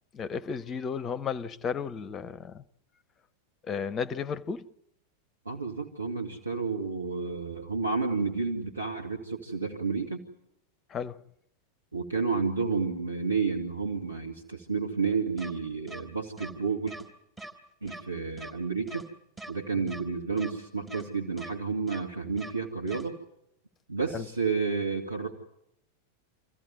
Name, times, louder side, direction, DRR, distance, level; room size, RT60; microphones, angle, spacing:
voice 1, 0.1-2.6 3.6-4.7 10.9-11.2 19.7-19.8 24.1-24.3, left 6 dB, 25° left, 0.9 m, -34 dB
voice 2, 5.5-10.2 11.9-16.9 17.8-19.0 19.5-23.2 23.9-25.3, right 4 dB, 80° right, 2.0 m, -31 dB
sound 1, 15.4-15.5 15.9-16.0 16.4-16.5 16.9-17.0 17.4-17.5 17.9-18.0 18.4-18.5 18.9-19.0 19.4-19.5 19.9-20.0 20.4-20.5 20.9-21.0 21.4-21.5 21.9-22.0 22.4-22.5 22.9-23.0, right 2 dB, 15° right, 3.5 m, -42 dB
27.0 x 15.0 x 9.7 m
figure-of-eight pair, 90°, 0 cm